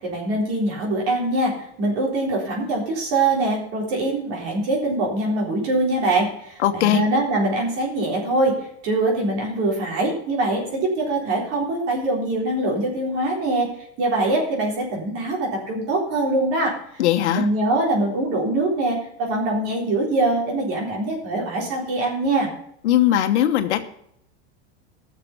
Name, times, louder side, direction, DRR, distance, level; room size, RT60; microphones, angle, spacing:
voice 1, 0.0-13.7 14.0-22.5, right 2 dB, 45° right, -2 dB, 3.9 m, -23 dB
voice 2, 6.6-7.0 17.0-17.5 22.8-23.8, left 12 dB, 85° left, 8 dB, 1.2 m, -19 dB
15.5 x 6.8 x 5.7 m, 0.71 s
supercardioid pair, 155°, 33 cm